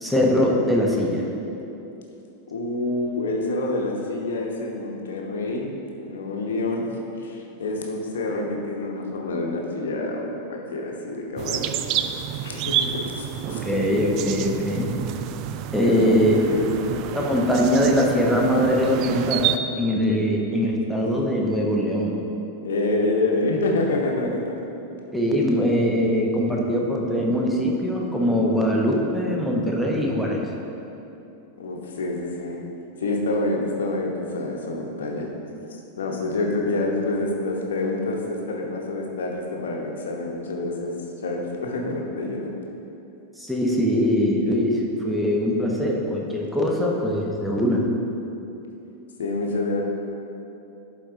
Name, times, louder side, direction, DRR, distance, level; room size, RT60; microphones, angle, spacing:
voice 1, 0.0-1.3 13.5-14.9 15.7-16.4 17.1-22.2 25.1-30.4 43.4-47.9, equal, ahead, -2 dB, 1.0 m, -22 dB
voice 2, 2.5-5.7 6.0-6.9 7.2-11.8 12.4-13.2 13.5-13.7 15.8-17.2 22.6-24.4 31.6-32.6 33.0-35.3 36.0-40.9 41.2-42.5 49.2-49.8, left 2 dB, 65° left, 0 dB, 1.0 m, -27 dB
sound 1, 11.4-19.6, right 10 dB, 40° right, 0.3 m, -29 dB
11.5 x 4.1 x 3.7 m, 2.9 s
figure-of-eight pair, 90°, 0 cm